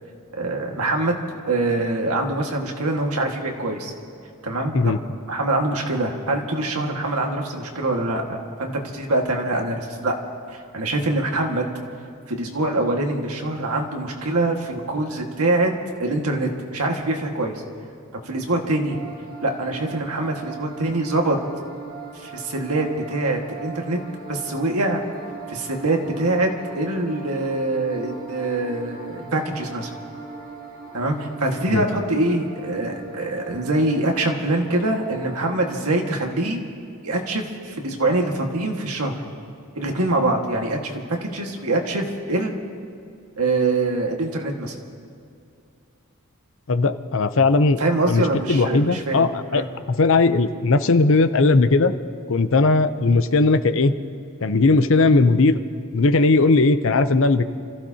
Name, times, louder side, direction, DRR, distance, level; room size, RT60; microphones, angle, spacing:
voice 1, 0.4-1.2 1.5-3.9 4.4-5.0 5.3-10.1 10.5-11.7 12.3-15.7 16.0-17.5 18.2-19.0 19.4-21.4 22.1-24.0 24.3-25.0 25.5-26.5 26.8-29.9 30.9-36.6 37.0-39.2 39.7-42.6 43.4-44.7 47.8-49.7, right 2 dB, 85° right, 1 dB, 1.8 m, -24 dB
sound 1, 18.9-36.0, right 4 dB, 55° right, 3.1 m, -39 dB
voice 2, 46.7-47.8 48.1-48.2 48.5-51.9 52.3-53.9 54.4-55.6 55.9-57.4, left 3 dB, 60° left, 10 dB, 0.7 m, -18 dB
29.5 x 15.0 x 2.9 m, 2.4 s
head